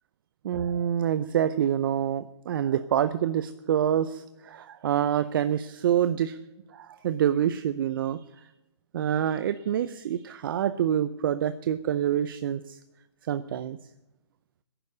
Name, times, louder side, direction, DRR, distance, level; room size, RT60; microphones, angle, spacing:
voice 1, 0.4-6.4 6.7-8.5 8.9-12.8 13.3-13.8, right 10 dB, 45° right, 12 dB, 0.6 m, -27 dB
11.0 x 10.0 x 9.6 m, 0.94 s
hypercardioid pair, 145°, 16 cm